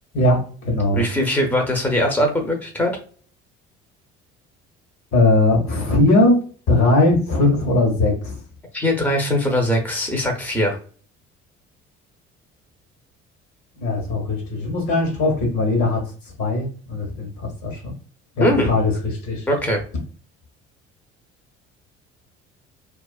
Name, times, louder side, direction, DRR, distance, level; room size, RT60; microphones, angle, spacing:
voice 1, 0.1-1.0 5.1-6.4 6.7-8.4 13.8-17.9 18.3-19.5, left 2 dB, 55° left, 1 dB, 1.1 m, -19 dB
voice 2, 0.9-2.9 8.7-10.8 18.4-18.7 19.5-19.8, equal, 5° left, 2 dB, 0.7 m, -21 dB
2.4 x 2.3 x 2.3 m, 0.42 s
hypercardioid pair, 55°, 34 cm